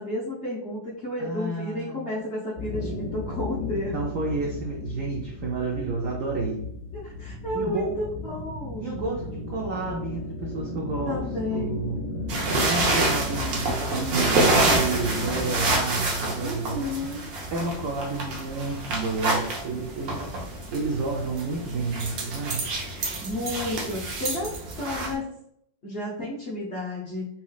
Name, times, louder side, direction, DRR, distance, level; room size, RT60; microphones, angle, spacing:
voice 1, 0.0-3.9 6.9-8.9 11.0-11.8 16.4-17.2 23.2-24.5 24.8-25.3 25.8-27.3, left 1 dB, 55° left, -6 dB, 0.8 m, -32 dB
voice 2, 1.2-2.1 3.7-6.7 7.5-7.9 8.8-11.2 11.5-12.0 12.5-16.9 17.5-20.3 20.7-22.6, right 3 dB, 85° right, -1 dB, 0.7 m, -30 dB
sound 1, 2.6-15.8, left 2 dB, 80° left, 1.4 m, -35 dB
sound 2, 12.3-25.1, right 2 dB, 65° right, 1.0 m, -27 dB
4.1 x 2.8 x 2.3 m, 0.73 s
omnidirectional pair, 2.1 m